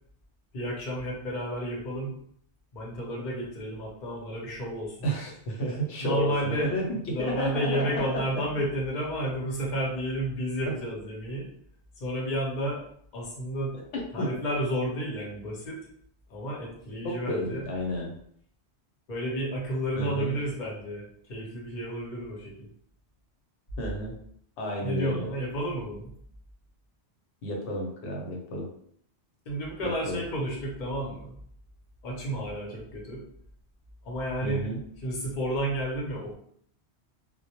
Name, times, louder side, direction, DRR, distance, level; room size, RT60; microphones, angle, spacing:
voice 1, 0.5-2.1 2.7-5.1 6.0-6.7 7.1-11.5 12.0-12.8 13.1-13.8 14.1-15.8 16.3-17.6 19.1-22.7 24.8-26.1 29.5-31.4 32.0-33.2 34.0-34.6 35.0-36.3, right 1 dB, 50° left, -3 dB, 0.8 m, -31 dB
voice 2, 5.0-8.2 14.2-14.3 17.0-18.1 20.0-20.3 23.8-24.2 24.6-25.3 27.4-28.7 29.8-30.2 34.4-34.8, equal, 85° left, -1 dB, 1.0 m, -31 dB
2.1 x 2.1 x 2.8 m, 0.64 s
omnidirectional pair, 1.1 m